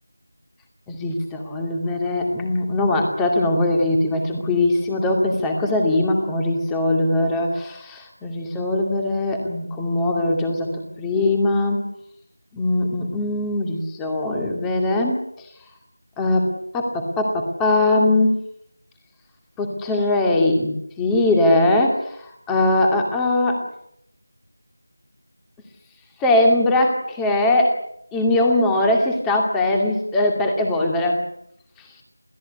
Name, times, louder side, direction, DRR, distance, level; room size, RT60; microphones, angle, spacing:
voice 1, 0.9-11.8 12.5-15.2 16.2-16.5 16.7-18.4 19.6-23.6 26.2-27.8 28.1-31.2, left 2 dB, 5° left, 2 dB, 2.4 m, -21 dB
28.5 x 17.0 x 9.6 m, 0.73 s
figure-of-eight pair, 170°, 0 cm